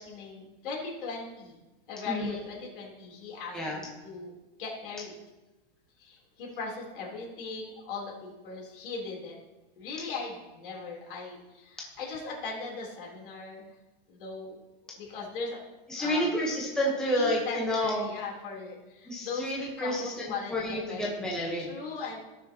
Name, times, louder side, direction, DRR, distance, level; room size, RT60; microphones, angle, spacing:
voice 1, 0.0-1.6 1.9-4.3 4.6-5.1 6.0-9.4 9.8-13.7 14.1-14.6 14.9-15.6 16.0-16.3 17.0-19.5 19.8-21.1 21.6-22.2, left 4 dB, 65° left, -2 dB, 3.6 m, -39 dB
voice 2, 2.1-2.4 3.5-3.8 15.9-18.1 19.1-20.1 20.5-21.8, equal, ahead, -4 dB, 1.1 m, -29 dB
17.5 x 6.3 x 3.0 m, 1.1 s
supercardioid pair, 170°, 29 cm